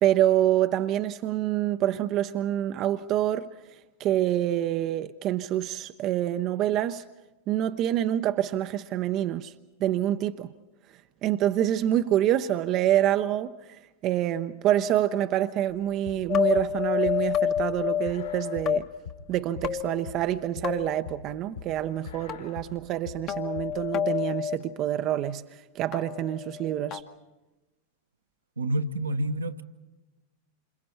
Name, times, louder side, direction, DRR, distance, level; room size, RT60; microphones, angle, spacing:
voice 1, 0.0-3.5 4.0-7.0 7.5-9.5 9.8-10.5 11.2-18.9 19.3-27.0, right 12 dB, 35° right, 0.7 m, -26 dB
sound 1, 15.7-23.8, left 6 dB, 70° left, 3.6 m, -43 dB
sound 2, 16.3-18.8 19.6-20.4 20.6-21.0 22.3-22.4 23.3-24.6 25.9-27.0, left 9 dB, 35° left, 1.3 m, -28 dB
voice 2, 28.6-29.6, right 1 dB, 75° right, 1.2 m, -28 dB
28.0 x 27.5 x 4.4 m
figure-of-eight pair, 90°, 0 cm